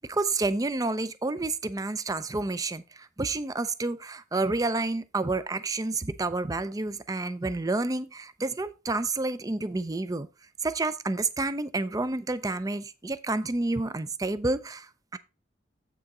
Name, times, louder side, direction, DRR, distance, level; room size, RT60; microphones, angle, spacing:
voice 1, 0.1-10.3 10.6-15.2, right 2 dB, 20° right, 0.5 m, -29 dB
7.9 x 6.1 x 4.1 m
head